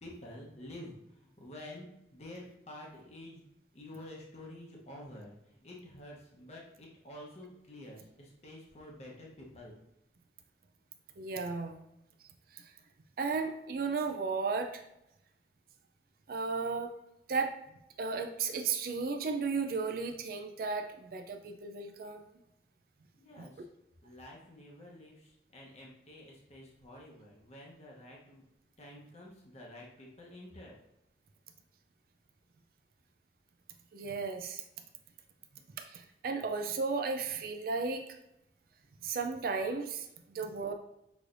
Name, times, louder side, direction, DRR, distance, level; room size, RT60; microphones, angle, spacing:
voice 1, 0.0-3.4 3.7-9.8 23.1-23.7 24.0-28.4 28.8-30.8, left 1 dB, 40° left, -2 dB, 0.9 m, -49 dB
voice 2, 11.2-11.8 12.5-12.6 13.2-14.8 16.3-16.9 17.3-17.5 18.0-22.2 33.9-34.6 35.8-38.0 39.0-40.1 40.3-40.7, right 4 dB, 55° right, 5 dB, 0.4 m, -34 dB
6.1 x 3.2 x 2.6 m, 0.83 s
head